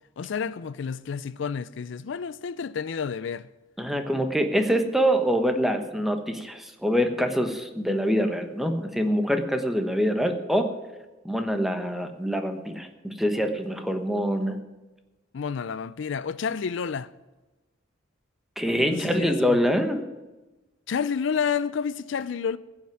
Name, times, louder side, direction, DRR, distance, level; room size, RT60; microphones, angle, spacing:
voice 1, 0.2-3.5 15.3-17.1 18.9-19.6 20.9-22.6, left 6 dB, 70° left, 0.4 m, -30 dB
voice 2, 3.8-10.7 11.2-14.6 18.6-20.0, equal, ahead, 1.1 m, -25 dB
15.5 x 6.0 x 9.2 m
head